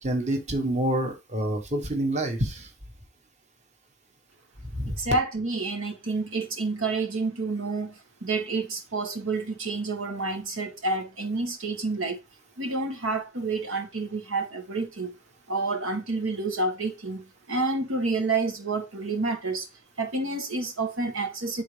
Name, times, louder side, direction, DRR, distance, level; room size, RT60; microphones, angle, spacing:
voice 1, 0.0-2.7 4.7-5.0, right 1 dB, 35° right, 1.2 m, -27 dB
voice 2, 5.0-12.2 12.6-15.1 15.5-19.7 20.0-21.6, right 3 dB, 90° right, 1.6 m, -29 dB
9.5 x 3.8 x 3.3 m
head